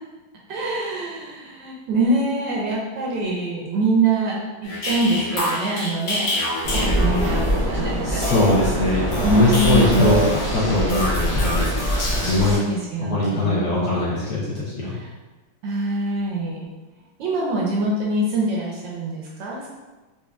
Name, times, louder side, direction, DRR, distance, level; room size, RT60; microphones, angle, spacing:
voice 1, 0.5-6.4 6.7-8.5 9.2-10.2 12.5-13.8 14.9-15.1 15.6-16.7 17.2-19.7, right 2 dB, 75° right, -3 dB, 1.1 m, -24 dB
sound 1, 4.6-7.7 8.2-12.5, left 1 dB, 90° left, 2.0 m, -27 dB
Waves surf, 6.6-12.6, equal, 10° left, 0.7 m, -24 dB
voice 2, 8.0-11.8 12.1-12.6 13.0-15.0, left 2 dB, 65° left, -7 dB, 1.0 m, -21 dB
4.3 x 2.6 x 2.3 m, 1.2 s
omnidirectional pair, 2.3 m